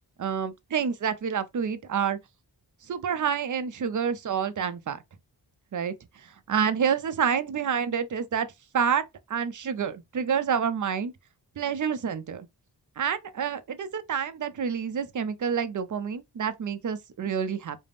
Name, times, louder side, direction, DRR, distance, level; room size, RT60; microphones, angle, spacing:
voice 1, 0.2-2.2 2.9-5.0 5.7-8.5 8.7-9.0 9.3-11.1 11.6-12.5 13.0-17.8, right 7 dB, 45° right, 0.5 m, -28 dB
2.4 x 2.1 x 3.3 m
wide cardioid pair, 45°, 43 cm